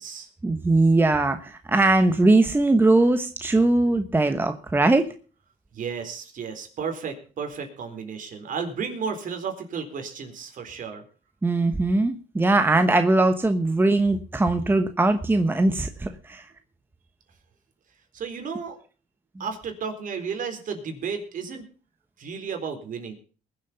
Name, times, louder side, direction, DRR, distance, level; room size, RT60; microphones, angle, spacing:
voice 1, 0.4-5.1 11.4-16.4, right 2 dB, 10° right, 8 dB, 1.1 m, -20 dB
voice 2, 5.7-11.0 18.1-18.8 19.4-21.6 22.2-23.1, right 6 dB, 50° right, 5 dB, 4.1 m, -33 dB
21.0 x 7.6 x 5.6 m, 0.38 s
cardioid pair, 110°, 17 cm